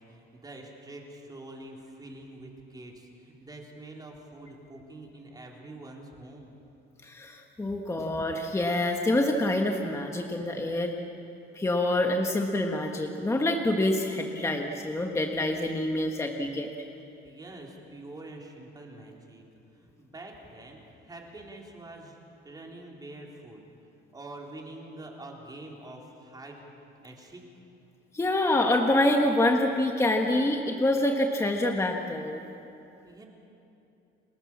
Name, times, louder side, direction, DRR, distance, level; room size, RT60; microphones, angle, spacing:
voice 1, 0.0-6.5 17.2-19.4 19.8-22.2 22.4-23.6 24.1-26.6 27.0-27.4 33.0-33.2, right 2 dB, 20° right, -1 dB, 3.9 m, -45 dB
voice 2, 7.0-10.9 11.5-16.7 28.1-32.4, left 1 dB, 15° left, 2 dB, 1.4 m, -26 dB
29.5 x 20.5 x 7.4 m, 2.9 s
cardioid pair, 135°, 21 cm